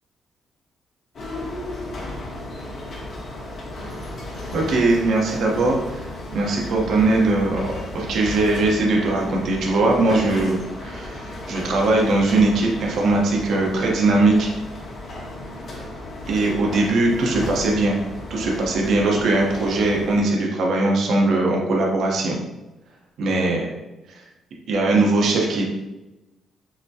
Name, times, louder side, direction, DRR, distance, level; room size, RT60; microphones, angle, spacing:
sound 1, 1.1-20.2, left 1 dB, 50° left, 1.0 m, -34 dB
voice 1, 4.5-6.0 6.3-14.5 16.3-18.0 18.3-22.4 23.2-23.7 24.7-25.6, right 2 dB, 70° right, -1 dB, 0.9 m, -20 dB
5.9 x 2.2 x 2.8 m, 1.0 s
cardioid pair, 90°, 0 cm